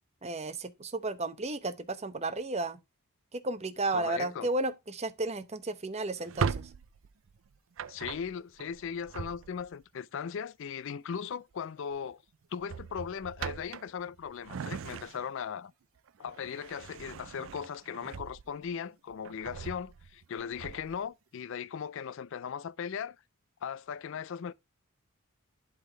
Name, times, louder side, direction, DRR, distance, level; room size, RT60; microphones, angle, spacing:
voice 1, 0.2-2.8 3.3-6.7, right 2 dB, 30° right, 0.8 m, -33 dB
voice 2, 3.9-4.5 7.9-12.2 12.5-15.7 16.2-23.2 23.6-24.5, left 7 dB, 55° left, 0.3 m, -38 dB
Drawer open or close, 6.2-9.8 11.3-11.6 11.9-12.1 12.6-15.5 16.0-18.7 19.1-21.0, right 6 dB, 60° right, 0.4 m, -39 dB
11.5 x 3.8 x 3.9 m
head